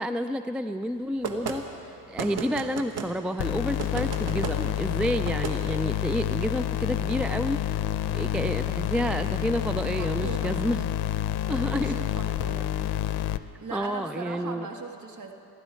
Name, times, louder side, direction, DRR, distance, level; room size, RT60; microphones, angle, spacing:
voice 1, 0.0-7.6 8.1-10.9 11.5-12.0 13.7-14.7, equal, 5° right, 10 dB, 0.3 m, -30 dB
sound 1, 1.2-1.6 2.2-3.1 3.8-4.6 5.2-5.6, right 5 dB, 75° right, 1.5 m, -33 dB
sound 2, 3.4-13.4, left 12 dB, 85° left, 0.6 m, -28 dB
voice 2, 10.0-10.6 11.7-12.6 13.6-15.3, right 4 dB, 45° right, 3 dB, 1.8 m, -38 dB
27.5 x 12.0 x 4.4 m, 2.9 s
cardioid pair, 90°, 39 cm